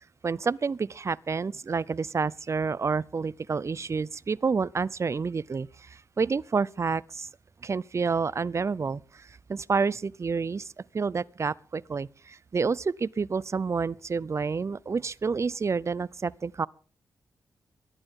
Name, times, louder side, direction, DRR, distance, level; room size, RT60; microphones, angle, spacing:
voice 1, 0.2-7.3 7.6-10.7 10.9-16.7, right 5 dB, 45° right, 0.6 m, -29 dB
23.0 x 11.5 x 3.8 m
cardioid pair, 65°, 7 cm